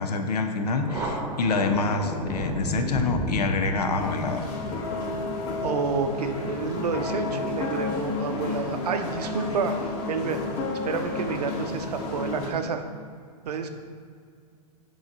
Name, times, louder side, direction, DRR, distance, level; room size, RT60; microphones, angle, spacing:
voice 1, 0.0-4.5, left 3 dB, 75° left, 6 dB, 0.8 m, -26 dB
Thunder, 0.8-7.9, right 1 dB, 15° right, 1.0 m, -34 dB
sound 1, 4.0-12.5, left 3 dB, 45° left, 1.5 m, -31 dB
voice 2, 5.6-10.4 10.8-12.8 13.5-13.7, right 5 dB, 75° right, 7 dB, 0.7 m, -29 dB
7.0 x 3.2 x 5.3 m, 2.1 s
hypercardioid pair, 120°, 21 cm